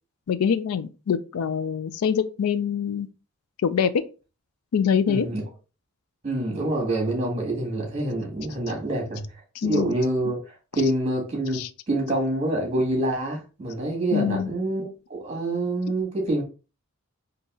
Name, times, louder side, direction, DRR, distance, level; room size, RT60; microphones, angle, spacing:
voice 1, 0.3-3.1 3.6-3.9 4.7-5.3 9.6-10.0 11.5-11.7 14.1-14.5, left 7 dB, 85° left, 0.4 m, -24 dB
voice 2, 5.1-5.4 6.2-9.2 9.6-16.4, right 1 dB, 30° right, 1.7 m, -26 dB
4.0 x 2.8 x 3.6 m
head